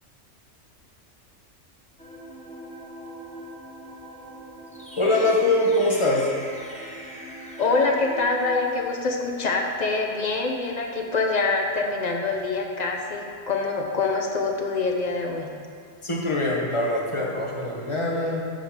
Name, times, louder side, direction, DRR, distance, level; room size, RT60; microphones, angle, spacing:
sound 1, 2.0-8.8, right 1 dB, 5° left, 0.8 m, -41 dB
voice 1, 5.0-6.3 16.0-18.4, left 2 dB, 25° left, -3 dB, 1.1 m, -23 dB
voice 2, 7.6-15.5, left 3 dB, 40° left, 2 dB, 0.7 m, -25 dB
10.5 x 3.9 x 4.9 m, 2.3 s
omnidirectional pair, 1.3 m